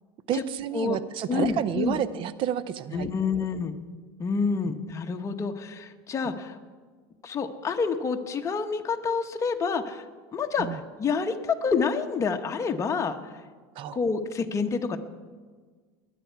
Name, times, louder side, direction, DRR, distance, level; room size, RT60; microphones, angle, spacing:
voice 1, 0.3-3.1 10.6-10.8 13.8-14.0, right 10 dB, 45° right, 15 dB, 0.7 m, -30 dB
voice 2, 1.3-2.0 2.9-3.8 4.2-6.6 7.2-10.0 10.3-13.4 13.9-15.0, left 5 dB, 25° left, 4 dB, 1.2 m, -28 dB
21.5 x 9.3 x 4.7 m, 1.5 s
supercardioid pair, 115°, 12 cm